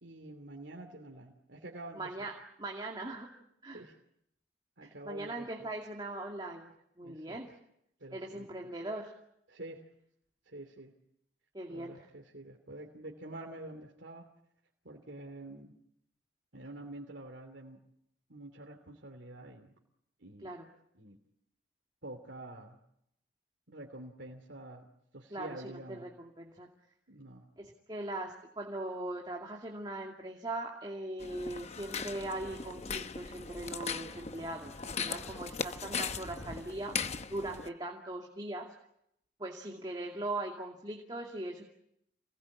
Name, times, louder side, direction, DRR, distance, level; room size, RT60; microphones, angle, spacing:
voice 1, 0.0-2.1 3.7-4.0 4.8-5.7 7.0-7.4 8.0-8.7 9.5-9.9 10.4-11.0 11.7-14.3 14.8-15.8 16.5-17.8 18.3-19.7 20.2-20.6 20.9-21.2 22.0-22.8 23.7-24.9 25.1-26.1 27.1-27.5, right 1 dB, 75° right, 2 dB, 2.8 m, -47 dB
voice 2, 2.0-3.3 3.6-3.8 4.8-6.7 7.0-7.5 8.1-9.2 11.5-11.9 20.4-20.7 25.3-26.7 27.6-38.7 39.4-41.7, right 2 dB, 25° right, 0 dB, 2.4 m, -40 dB
sound 1, 31.2-37.7, left 5 dB, 35° left, 0.9 m, -39 dB
28.0 x 20.0 x 8.6 m, 0.78 s
head